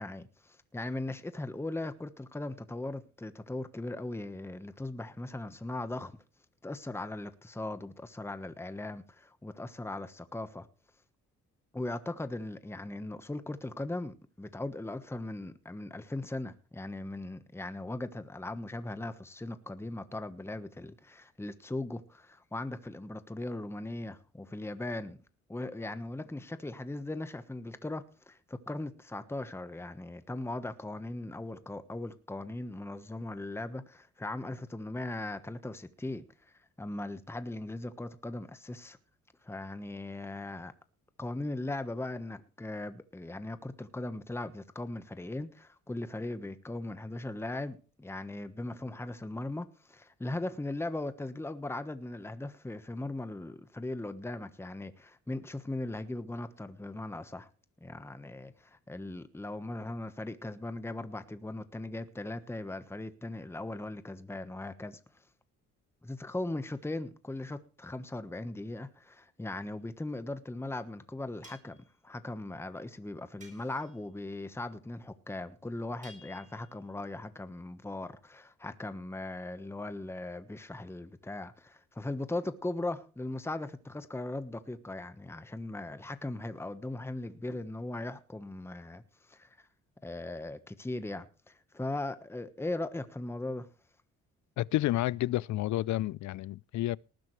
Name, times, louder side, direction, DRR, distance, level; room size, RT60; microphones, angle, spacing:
voice 1, 0.0-6.2 6.6-10.7 11.7-25.2 25.5-39.0 39.4-40.7 41.2-57.5 57.8-65.2 66.0-71.8 72.0-89.7 90.0-93.7, left 2 dB, 10° left, 1.2 m, -39 dB
sound 1, 69.6-69.7 71.4-71.8 73.4-74.0 76.0-76.9, right 1 dB, 25° right, 7.5 m, -56 dB
voice 2, 94.6-97.0, left 15 dB, 70° left, 0.5 m, -30 dB
19.0 x 10.5 x 3.2 m
cardioid pair, 90°, 30 cm